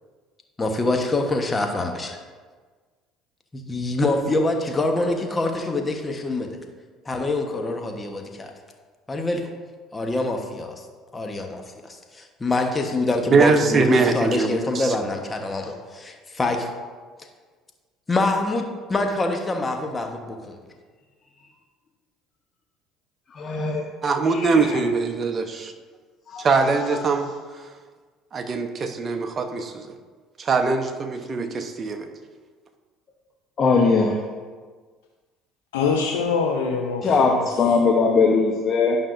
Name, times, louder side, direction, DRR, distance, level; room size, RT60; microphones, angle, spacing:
voice 1, 0.6-2.2 3.5-6.6 7.0-8.5 9.1-9.4 9.9-10.7 11.1-16.7 18.1-20.6, left 2 dB, 25° left, 1.2 m, -25 dB
voice 2, 13.3-14.9 24.0-25.7 26.4-27.3 28.3-29.9 30.4-32.1, right 4 dB, 40° right, 0.9 m, -22 dB
voice 3, 23.3-23.8 24.3-24.8 26.3-26.5 33.6-34.2 37.0-39.0, left 4 dB, 45° left, 0.9 m, -20 dB
voice 4, 35.7-37.8, left 5 dB, 90° left, 0.6 m, -25 dB
11.5 x 5.5 x 2.6 m
hypercardioid pair, 70°, 0 cm